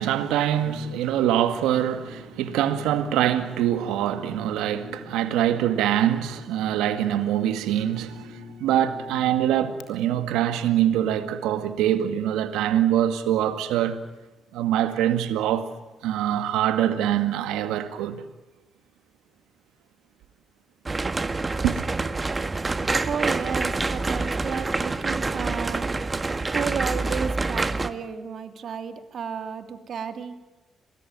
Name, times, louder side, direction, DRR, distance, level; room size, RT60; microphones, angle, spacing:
voice 1, 0.0-14.0 14.5-15.7 16.0-18.2 21.6-21.8, right 11 dB, 85° right, 2.0 m, -24 dB
Brass instrument, 0.5-9.9, left 6 dB, 80° left, 3.6 m, -45 dB
sound 1, 20.9-27.9, right 3 dB, 30° right, 1.7 m, -27 dB
voice 2, 23.0-25.9 26.5-30.4, right 7 dB, 65° right, 2.7 m, -32 dB
26.5 x 20.0 x 9.1 m
supercardioid pair, 55°, 0 cm